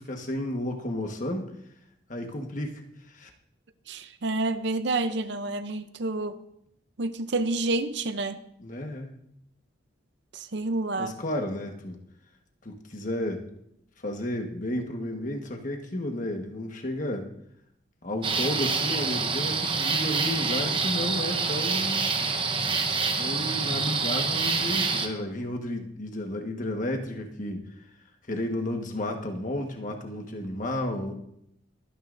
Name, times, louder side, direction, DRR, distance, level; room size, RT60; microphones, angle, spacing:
voice 1, 0.0-1.5 2.1-2.8 3.1-3.3 8.6-9.1 11.0-12.0 12.6-13.4 14.0-17.3 18.0-22.1 23.2-27.6 28.3-31.1, left 1 dB, 40° left, 3 dB, 1.4 m, -32 dB
voice 2, 3.9-6.4 7.0-8.4 10.3-11.1, right 2 dB, 55° right, 11 dB, 0.6 m, -29 dB
sound 1, 18.2-25.1, right 4 dB, 25° right, 0.9 m, -27 dB
23.0 x 9.6 x 2.6 m, 0.74 s
head